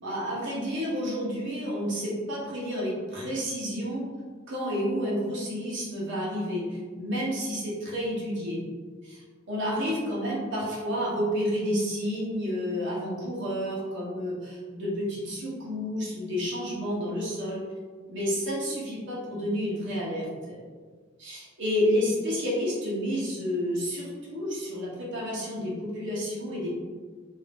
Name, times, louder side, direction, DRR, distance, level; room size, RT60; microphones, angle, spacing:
voice 1, 0.0-4.0 4.5-8.6 9.0-17.6 18.1-20.6 21.2-26.7, equal, 65° right, -6 dB, 1.0 m, -30 dB
2.7 x 2.6 x 3.4 m, 1.5 s
head